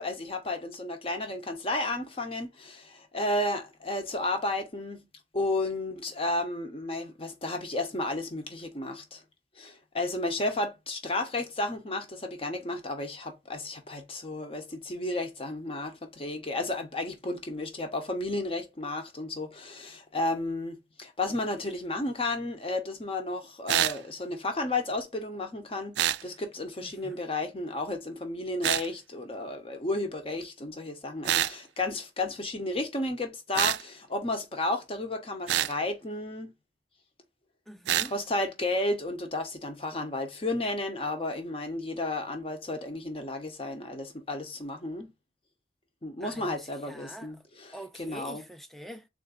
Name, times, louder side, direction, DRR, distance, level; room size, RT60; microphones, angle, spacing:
voice 1, 0.0-5.1 5.3-9.2 9.6-36.5 38.1-45.1 46.0-48.4, left 2 dB, 35° left, 0.8 m, -33 dB
sound 1, 23.7-24.0 26.0-26.2 28.6-28.9 31.2-31.6 33.5-33.8 35.5-35.7 37.9-38.1, right 12 dB, 80° right, 0.3 m, -26 dB
voice 2, 26.8-27.2 37.7-38.1 46.2-47.3 47.7-49.1, equal, ahead, 0.4 m, -45 dB
3.7 x 2.5 x 3.7 m
head